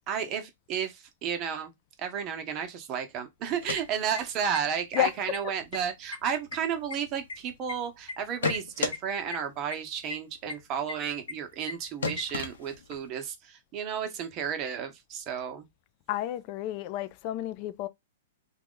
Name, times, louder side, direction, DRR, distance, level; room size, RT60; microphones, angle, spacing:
voice 1, 0.0-1.7 2.0-15.6, right 8 dB, 30° right, 0.9 m, -33 dB
sound 1, 3.5-4.6 4.9-5.0 5.3-5.8 6.1-7.7 8.1-9.0 9.3-9.4 9.7-9.8 10.1-10.2 10.5-10.6 10.9-11.0 11.3-11.4 11.7-11.8 12.0-13.1, left 4 dB, 90° left, 0.9 m, -33 dB
voice 2, 16.1-17.9, left 11 dB, 40° left, 0.4 m, -30 dB
2.9 x 2.4 x 3.7 m
hypercardioid pair, 140°, 0 cm